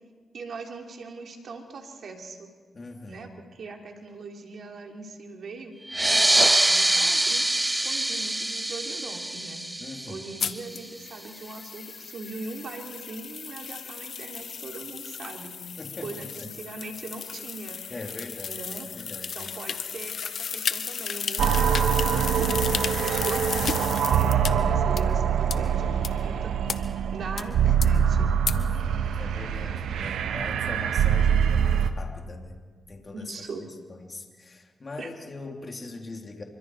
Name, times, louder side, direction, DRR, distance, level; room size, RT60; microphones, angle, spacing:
voice 1, 0.3-2.5 3.1-5.7 6.6-9.6 10.1-15.6 16.0-17.8 18.4-18.9 19.4-22.6 23.0-26.8 27.1-28.4 33.1-33.7 35.0-35.1, right 3 dB, 70° right, 2 dB, 3.3 m, -40 dB
voice 2, 2.7-3.3 9.8-10.3 15.8-16.5 17.9-18.6 19.0-19.6 28.5-32.6 32.9-33.3 33.9-36.4, left 3 dB, 40° left, 2 dB, 3.4 m, -41 dB
sound 1, 5.9-11.0, right 1 dB, 15° right, 0.6 m, -24 dB
sound 2, 10.4-24.5 25.0-25.1 25.5-25.6 26.0-26.1 26.7-26.8 27.4-27.5 27.8-27.9 28.5-28.6, left 7 dB, 70° left, 1.0 m, -34 dB
sound 3, 21.4-31.9, right 8 dB, 90° right, 1.0 m, -24 dB
26.5 x 24.5 x 4.8 m, 1.5 s
cardioid pair, 60°, 0 cm